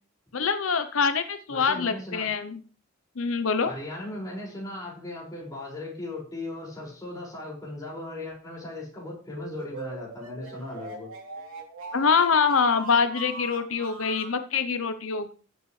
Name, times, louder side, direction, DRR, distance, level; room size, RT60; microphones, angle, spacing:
voice 1, 0.3-2.6 3.2-3.7 11.9-15.3, left 5 dB, 85° left, 10 dB, 0.8 m, -24 dB
voice 2, 1.5-2.3 3.7-11.1, left 2 dB, 20° left, -4 dB, 5.7 m, -37 dB
sound 1, 9.4-14.4, right 2 dB, 80° right, 3.3 m, -41 dB
15.0 x 7.9 x 3.3 m, 0.38 s
head